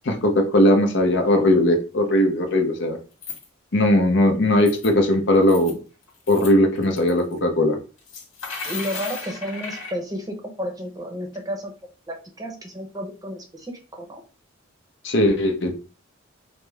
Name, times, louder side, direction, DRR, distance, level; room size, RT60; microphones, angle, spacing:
voice 1, 0.0-3.0 3.7-5.8 6.3-7.8 15.0-15.7, left 1 dB, 60° left, 5 dB, 0.7 m, -19 dB
sound 1, 3.2-3.5 4.4-4.9 5.4-5.7 6.1-6.5 6.8-7.4 8.0-9.9, left 4 dB, 80° left, 1.6 m, -35 dB
voice 2, 8.6-11.7 12.1-14.2, equal, 20° right, 2 dB, 0.7 m, -32 dB
5.1 x 2.0 x 3.4 m, 0.35 s
head